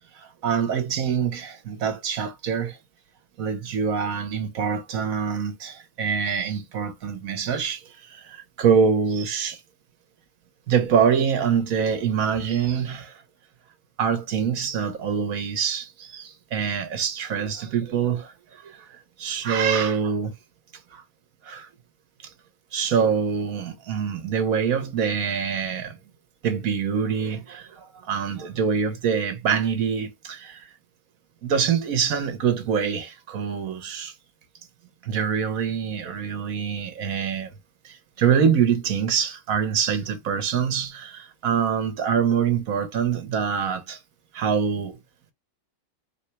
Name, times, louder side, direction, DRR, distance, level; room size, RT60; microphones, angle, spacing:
voice 1, 0.2-2.8 3.4-9.6 10.7-13.2 14.0-20.3 20.9-21.0 21.4-21.7 22.7-26.0 26.4-30.7 31.4-34.1 35.0-37.5 37.8-44.0 44.3-45.0, right 7 dB, 60° right, 1.3 m, -25 dB
4.6 x 2.9 x 3.3 m
omnidirectional pair, 1.8 m